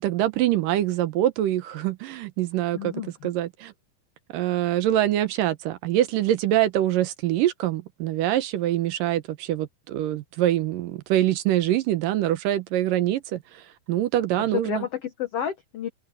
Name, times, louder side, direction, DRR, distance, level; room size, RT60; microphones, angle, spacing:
voice 1, 0.0-2.9 3.2-3.7 4.3-13.6 13.9-14.8, right 13 dB, 75° right, 2.5 m, -24 dB
voice 2, 2.7-3.3 14.4-15.9, left 9 dB, 75° left, 1.4 m, -31 dB
omnidirectional pair, 4.2 m